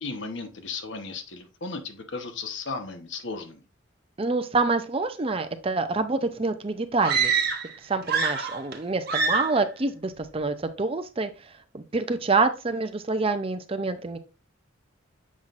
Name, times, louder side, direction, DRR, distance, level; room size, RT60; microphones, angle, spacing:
voice 1, 0.0-3.6, left 4 dB, 65° left, 7 dB, 1.1 m, -35 dB
voice 2, 4.2-7.3 7.8-14.2, right 3 dB, 30° right, 9 dB, 0.5 m, -27 dB
sound 1, 7.0-7.7 8.0-8.8 9.1-9.6, right 5 dB, 50° right, 1.1 m, -25 dB
7.3 x 5.7 x 2.5 m, 0.29 s
head